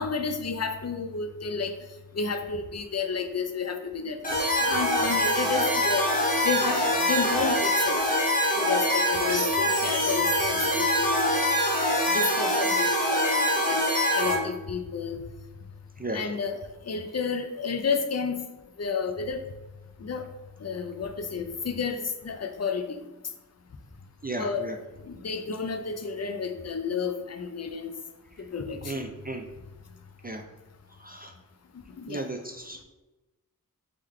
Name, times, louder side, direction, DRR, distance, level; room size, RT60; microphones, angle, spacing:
voice 1, 0.0-1.8 2.1-4.3 4.6-6.1 6.4-8.0 8.6-11.6 12.1-15.2 16.1-18.4 18.8-19.4 20.0-20.2 20.6-23.0 24.4-24.7 25.1-27.9 28.5-29.1 32.0-32.3, left 5 dB, 45° left, 7 dB, 0.5 m, -31 dB
sound 1, 4.2-14.4, equal, 20° left, 1.1 m, -24 dB
voice 2, 16.0-16.3 24.2-24.8 28.8-29.4 30.2-30.4 31.0-31.3 32.1-32.8, right 2 dB, 25° right, 3 dB, 0.4 m, -35 dB
3.8 x 3.3 x 4.3 m, 1.1 s
wide cardioid pair, 75°, 37 cm